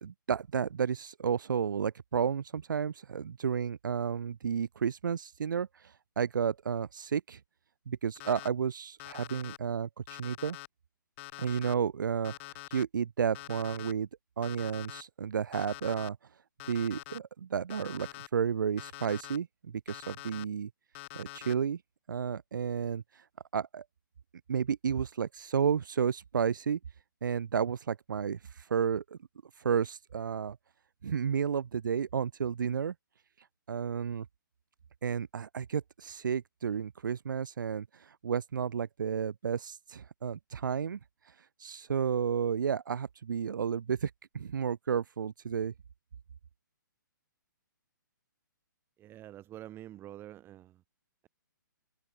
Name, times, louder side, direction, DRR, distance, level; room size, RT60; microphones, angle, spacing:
voice 1, 0.0-7.4 7.9-10.6 11.4-14.1 14.4-16.2 16.6-20.7 21.1-21.8 22.1-23.2 23.5-23.8 24.5-26.8 27.2-29.2 29.6-30.6 31.0-32.9 33.4-34.3 35.0-41.0 41.2-45.7, right 7 dB, 70° right, 0.9 m, -32 dB
Alarm, 8.2-8.5 9.0-9.6 10.1-10.7 11.2-11.7 12.2-12.8 13.3-13.9 14.4-15.0 15.5-16.1 16.6-17.2 17.7-18.3 18.8-19.4 19.9-20.4 20.9-21.5, left 21 dB, 35° left, 2.6 m, -45 dB
voice 2, 49.0-50.8, right 13 dB, 20° right, 6.1 m, -47 dB
hypercardioid pair, 135°, 11 cm